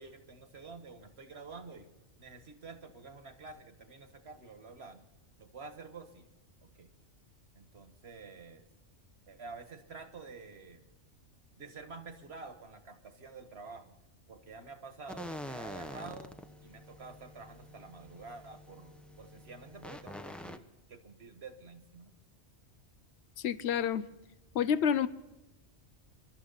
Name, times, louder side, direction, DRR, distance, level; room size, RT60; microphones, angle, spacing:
voice 1, 0.0-1.9 2.2-5.1 5.4-6.3 6.7-6.9 7.5-8.6 9.3-10.8 11.6-13.9 14.3-16.3 16.6-20.6 20.9-22.1, right 4 dB, 60° right, 7 dB, 1.8 m, -49 dB
sound 1, 15.1-20.6, left 1 dB, ahead, 0.7 m, -46 dB
voice 2, 23.4-24.0 24.5-25.1, left 8 dB, 70° left, 15 dB, 1.0 m, -28 dB
27.0 x 12.5 x 4.0 m, 0.99 s
omnidirectional pair, 1.2 m